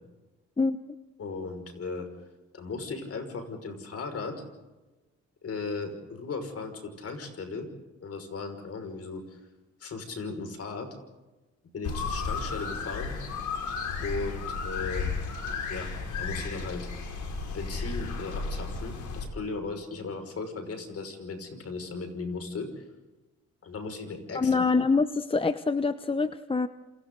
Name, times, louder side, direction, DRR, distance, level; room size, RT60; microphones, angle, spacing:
voice 1, 0.6-0.9 24.3-26.7, left 4 dB, 20° left, 11 dB, 0.9 m, -25 dB
voice 2, 1.2-2.1 2.5-4.4 5.4-7.7 8.0-9.4 9.8-11.0 11.7-13.2 14.0-15.1 15.7-16.9 17.5-22.8 23.6-24.6, left 4 dB, 50° left, 6 dB, 5.9 m, -37 dB
sound 1, 11.8-19.3, left 4 dB, 75° left, 5.5 m, -33 dB
28.5 x 27.5 x 4.0 m, 1.1 s
cardioid pair, 90°, 30 cm